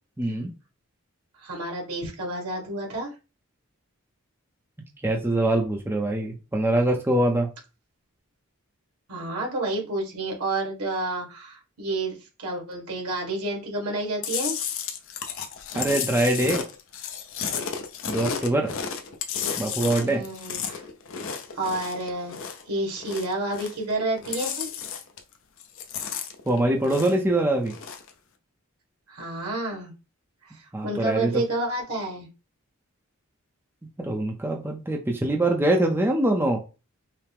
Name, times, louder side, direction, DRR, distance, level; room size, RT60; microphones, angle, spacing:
voice 1, 0.2-0.5 5.0-7.5 15.7-16.6 18.1-18.7 19.6-20.2 26.5-27.7 30.7-31.4 34.0-36.6, right 1 dB, 10° right, 1 dB, 0.5 m, -23 dB
voice 2, 1.4-3.1 9.1-14.6 20.0-20.8 21.5-24.7 29.1-29.9 30.4-32.3, right 2 dB, 80° right, -1 dB, 1.6 m, -30 dB
Chewing mastication, 14.2-22.7 23.0-23.9 24.2-25.3 25.6-27.3 27.6-28.1, left 7 dB, 60° left, 0.6 m, -32 dB
5.6 x 2.0 x 3.4 m, 0.31 s
head